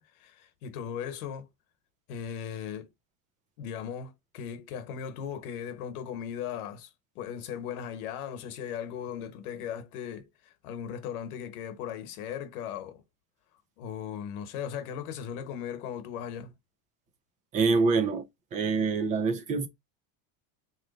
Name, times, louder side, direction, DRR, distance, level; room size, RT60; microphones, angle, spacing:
voice 1, 0.0-1.5 2.1-2.9 3.6-13.0 13.8-16.5, left 8 dB, 85° left, 1.1 m, -38 dB
voice 2, 17.5-18.2 18.5-19.7, right 4 dB, 20° right, 0.4 m, -25 dB
3.9 x 3.2 x 4.0 m
cardioid pair, 180°, 43 cm